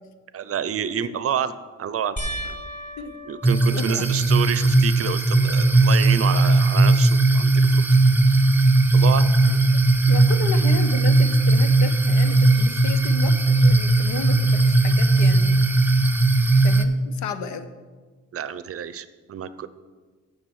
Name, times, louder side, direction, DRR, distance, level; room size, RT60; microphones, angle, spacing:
voice 1, 0.3-1.5 1.8-2.2 2.4-2.6 3.3-7.8 8.9-9.2 18.3-19.7, right 8 dB, 50° right, 14 dB, 0.6 m, -28 dB
sound 1, 2.2-4.8 5.4-5.9 6.3-6.4 9.6-9.7, equal, 25° left, 1.7 m, -36 dB
sound 2, 3.4-16.8, right 2 dB, 5° right, 0.6 m, -18 dB
voice 2, 3.7-4.1 9.5-9.6 10.1-15.6 16.6-17.7, left 6 dB, 70° left, 10 dB, 0.8 m, -33 dB
7.4 x 6.0 x 7.1 m, 1.3 s
cardioid pair, 90°, 30 cm